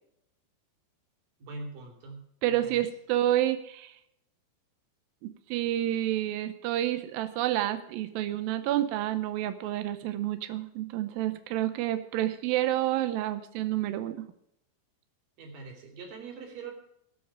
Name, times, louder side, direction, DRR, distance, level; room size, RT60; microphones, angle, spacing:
voice 1, 1.4-2.8 15.4-16.7, right 4 dB, 55° right, 2 dB, 4.3 m, -43 dB
voice 2, 2.4-4.0 5.2-14.3, right 13 dB, 80° right, 10 dB, 2.1 m, -29 dB
21.5 x 7.3 x 4.8 m, 0.76 s
omnidirectional pair, 5.0 m